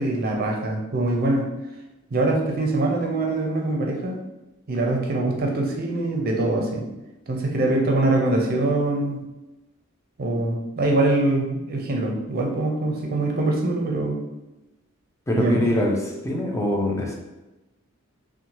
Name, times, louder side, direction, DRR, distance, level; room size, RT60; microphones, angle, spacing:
voice 1, 0.0-1.5 2.1-4.2 4.7-6.9 7.3-9.3 10.2-14.2 15.4-15.7, right 2 dB, 45° right, 0 dB, 0.5 m, -23 dB
voice 2, 15.3-16.0 16.2-17.1, left 1 dB, 15° left, -1 dB, 0.4 m, -23 dB
2.7 x 2.1 x 3.0 m, 1.0 s
head